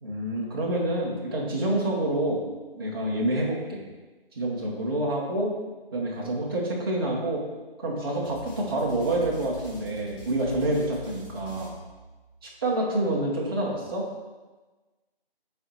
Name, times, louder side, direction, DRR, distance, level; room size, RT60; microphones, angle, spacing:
voice 1, 0.0-2.4 2.7-3.8 4.4-5.6 5.9-7.4 7.8-11.7 12.4-14.1, right 1 dB, 25° right, -5 dB, 1.0 m, -27 dB
sound 1, 8.2-12.5, right 1 dB, 20° left, 1.6 m, -44 dB
6.3 x 4.4 x 4.4 m, 1.2 s
figure-of-eight pair, 165°, 30 cm